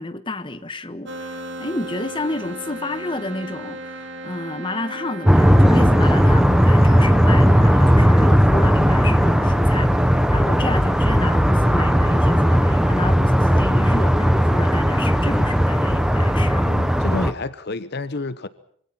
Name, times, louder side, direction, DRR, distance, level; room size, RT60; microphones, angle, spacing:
voice 1, 0.0-16.7, left 2 dB, 25° left, 1.3 m, -30 dB
sound 1, 1.1-7.5, right 1 dB, 60° right, 2.7 m, -36 dB
sound 2, 5.3-17.3, equal, 5° right, 1.1 m, -16 dB
voice 2, 16.6-18.5, left 2 dB, 50° left, 0.9 m, -29 dB
25.5 x 24.0 x 5.9 m
head